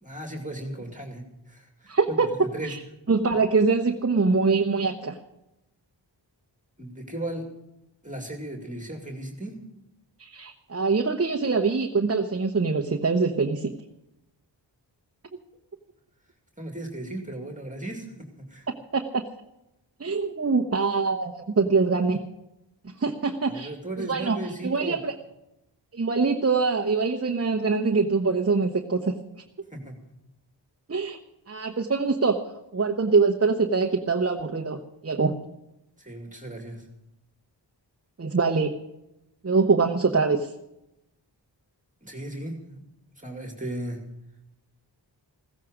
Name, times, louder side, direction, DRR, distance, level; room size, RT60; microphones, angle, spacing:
voice 1, 0.0-2.8 6.8-7.5 8.0-9.5 16.6-18.7 23.5-25.0 29.7-30.0 36.0-36.9 42.0-42.8 43.2-44.1, right 1 dB, 15° right, 2 dB, 2.3 m, -36 dB
voice 2, 1.9-2.3 2.6-2.8 3.1-5.2 10.2-13.7 18.9-19.2 20.0-22.2 23.0-23.7 24.0-24.4 24.6-25.1 25.9-29.1 30.9-31.2 31.5-32.4 32.7-35.3 38.2-38.7 39.4-40.5, right 4 dB, 30° right, 4 dB, 1.0 m, -24 dB
16.0 x 15.0 x 5.1 m, 0.89 s
wide cardioid pair, 90°, 45 cm